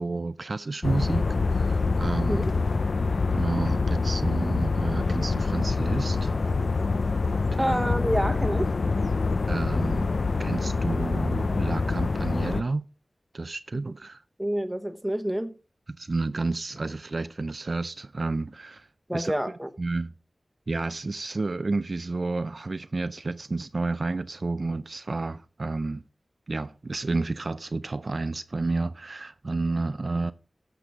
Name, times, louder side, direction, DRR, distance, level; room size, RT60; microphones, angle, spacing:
voice 1, 0.0-2.5 3.3-6.3 7.6-7.8 9.5-10.1 10.4-12.8 13.3-14.2 16.0-18.9 19.1-19.3 19.8-20.1 20.7-26.0 26.5-30.3, right 3 dB, 55° right, 0.4 m, -30 dB
sound 1, 0.8-12.6, left 4 dB, 80° left, 0.5 m, -25 dB
voice 2, 7.6-8.7 14.4-15.5 19.1-19.7, equal, 5° right, 1.1 m, -27 dB
14.0 x 6.8 x 3.6 m
wide cardioid pair, 75°, 0 cm